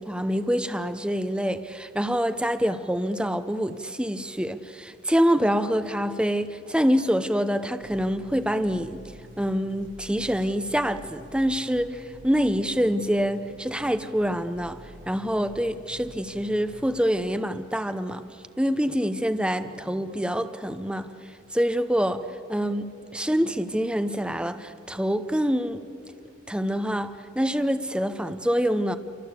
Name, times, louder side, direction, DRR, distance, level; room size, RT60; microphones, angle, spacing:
voice 1, 0.0-9.0 9.4-14.8 15.1-18.2 18.6-21.1 21.5-22.2 22.5-25.8 26.5-29.0, equal, 5° right, 0.7 m, -26 dB
sound 1, 7.8-16.8, left 1 dB, 80° right, 2.3 m, -48 dB
29.5 x 24.5 x 8.3 m
head